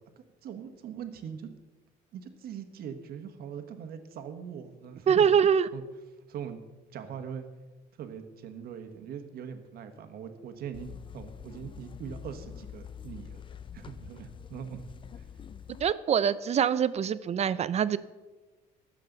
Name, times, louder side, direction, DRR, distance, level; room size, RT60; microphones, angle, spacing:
voice 1, 0.4-1.5 2.1-5.3 5.7-5.8 6.3-6.6 6.9-7.5 8.0-13.4 13.7-14.8 15.1-15.2, right 7 dB, 65° right, 7 dB, 1.4 m, -41 dB
voice 2, 5.1-5.7 15.8-18.0, right 8 dB, 40° right, 16 dB, 0.5 m, -24 dB
sound 1, 10.7-15.9, left 8 dB, 30° left, 0.5 m, -46 dB
21.0 x 7.6 x 3.9 m, 1.2 s
cardioid pair, 110°, 17 cm